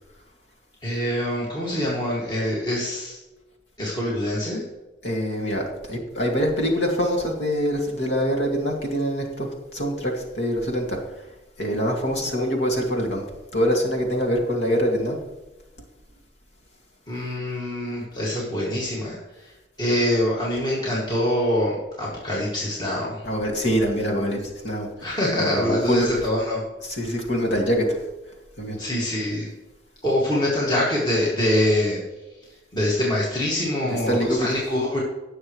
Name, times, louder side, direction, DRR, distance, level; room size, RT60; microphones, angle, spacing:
voice 1, 0.8-3.2 3.8-4.6 17.1-19.5 19.8-23.3 25.0-26.6 28.8-29.5 30.0-32.0 32.7-35.0, left 1 dB, 25° left, -6 dB, 2.2 m, -24 dB
voice 2, 5.0-11.3 11.6-13.2 13.5-15.2 23.2-25.1 25.4-26.1 26.8-28.0 28.6-28.8 33.8-34.6, equal, 85° left, 0 dB, 2.4 m, -24 dB
17.5 x 6.6 x 3.2 m, 1.1 s
head